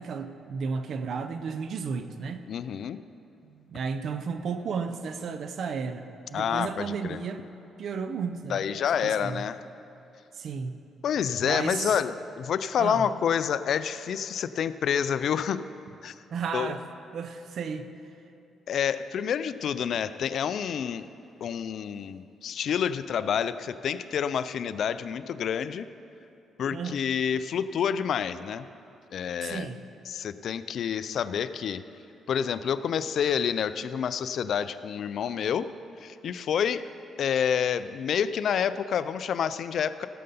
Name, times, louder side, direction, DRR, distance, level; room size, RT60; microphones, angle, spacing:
voice 1, 0.0-2.4 3.4-7.4 7.8-8.7 9.0-9.4 10.3-10.8 11.4-11.8 12.8-13.1 16.3-16.8 17.1-17.9 26.7-27.0 29.4-29.8, right 5 dB, 60° right, 9 dB, 0.6 m, -33 dB
voice 2, 2.5-3.0 6.3-7.2 8.5-9.6 11.0-15.6 16.0-16.1 16.5-16.8 18.7-21.1 21.4-25.9 26.6-28.7 29.1-29.7 30.1-31.8 32.3-35.7 36.0-36.8 37.2-40.1, left 8 dB, 65° left, 13 dB, 0.4 m, -28 dB
16.5 x 6.8 x 5.4 m, 2.7 s
cardioid pair, 90°, 0 cm